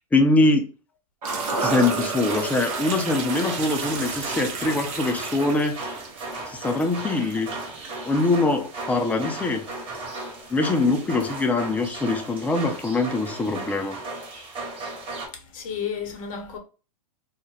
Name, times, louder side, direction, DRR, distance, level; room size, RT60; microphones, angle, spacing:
voice 1, 0.1-0.7 1.6-5.8 6.5-7.5 8.0-9.6 10.5-13.9, left 2 dB, 5° left, 0.4 m, -23 dB
sound 1, 1.2-8.6 9.0-9.1 10.0-10.1 11.9-12.0, right 5 dB, 50° right, 0.7 m, -35 dB
sound 2, 1.2-5.5 5.8-5.9, right 3 dB, 80° right, 0.9 m, -32 dB
sound 3, 2.2-15.3, right 2 dB, 25° right, 1.0 m, -36 dB
voice 2, 15.3-16.6, left 7 dB, 55° left, 0.8 m, -32 dB
2.4 x 2.1 x 3.2 m
hypercardioid pair, 110°, 20 cm